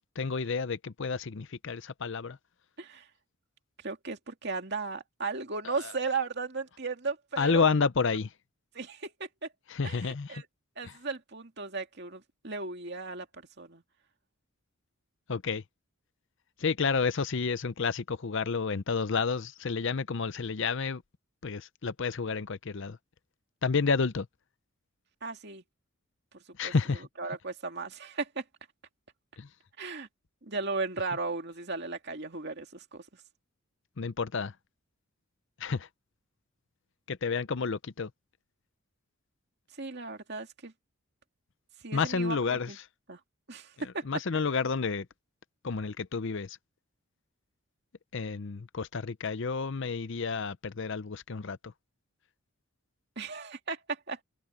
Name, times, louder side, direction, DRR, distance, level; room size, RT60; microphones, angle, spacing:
voice 1, 0.0-2.4 7.4-8.3 9.7-10.4 10.8-10.9 15.3-15.6 16.6-21.0 21.4-23.0 23.6-24.3 26.6-27.1 29.4-29.5 34.0-34.5 35.6-35.9 37.1-38.1 41.9-42.7 44.1-45.1 45.6-46.6 48.1-51.7, left 5 dB, 55° left, 0.6 m, -30 dB
voice 2, 3.8-7.7 8.7-9.5 9.8-10.5 10.8-13.8 25.2-25.6 26.6-26.7 27.2-28.4 29.8-30.1 30.4-33.1 39.8-40.7 41.8-42.8 43.1-43.2 43.5-44.1 53.2-54.2, right 4 dB, 50° right, 2.6 m, -36 dB
head